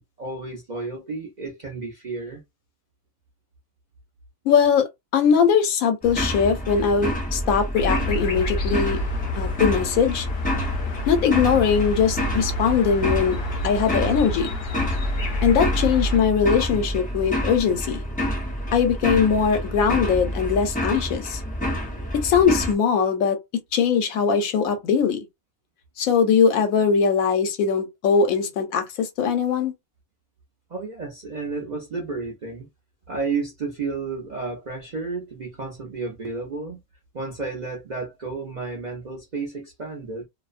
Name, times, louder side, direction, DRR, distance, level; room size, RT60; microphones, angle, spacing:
voice 1, 0.0-2.4 30.7-32.7 33.1-36.8 37.1-40.2, right 4 dB, 50° right, 0.5 m, -32 dB
voice 2, 4.5-9.0 9.4-10.3 11.1-13.4 13.6-14.5 15.4-18.0 18.7-21.4 22.2-23.4 23.7-25.2 26.0-29.7, left 6 dB, 80° left, 1.1 m, -21 dB
sound 1, 6.0-22.7, equal, 10° left, 0.4 m, -28 dB
sound 2, 7.7-16.2, left 2 dB, 60° left, 0.7 m, -30 dB
2.5 x 2.1 x 2.4 m
omnidirectional pair, 1.5 m